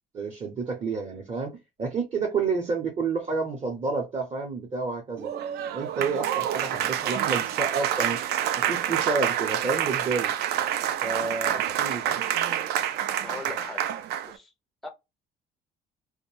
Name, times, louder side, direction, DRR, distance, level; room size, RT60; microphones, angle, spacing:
voice 1, 0.1-5.3 5.7-8.2 8.6-10.3 11.0-12.2, right 4 dB, 35° right, 0.7 m, -30 dB
Applause, 5.2-14.4, right 10 dB, 75° right, 0.4 m, -27 dB
voice 2, 11.4-12.1 13.2-13.8 14.3-14.5 14.8-14.9, left 2 dB, ahead, 0.4 m, -41 dB
2.6 x 2.1 x 3.1 m
cardioid pair, 110°, 17 cm